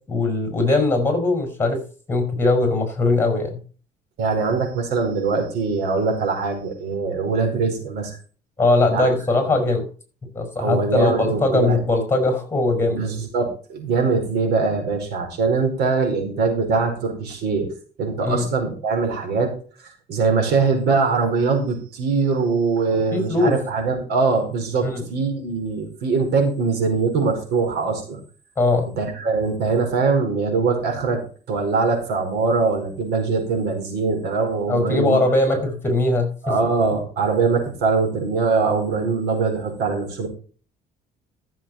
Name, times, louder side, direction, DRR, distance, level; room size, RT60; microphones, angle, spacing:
voice 1, 0.1-1.8 2.1-3.6 8.6-9.8 10.3-13.1 18.2-18.5 23.1-23.5 24.8-25.0 28.6-28.9 34.7-36.6, left 2 dB, 15° left, 5 dB, 5.7 m, -20 dB
voice 2, 4.2-8.2 8.9-9.1 10.6-11.8 12.9-17.7 18.0-19.5 20.1-28.2 29.0-31.2 31.5-35.2 35.5-35.6 36.4-40.3, right 4 dB, 75° right, 3 dB, 4.9 m, -22 dB
14.5 x 7.4 x 4.3 m, 0.39 s
cardioid pair, 110°, 17 cm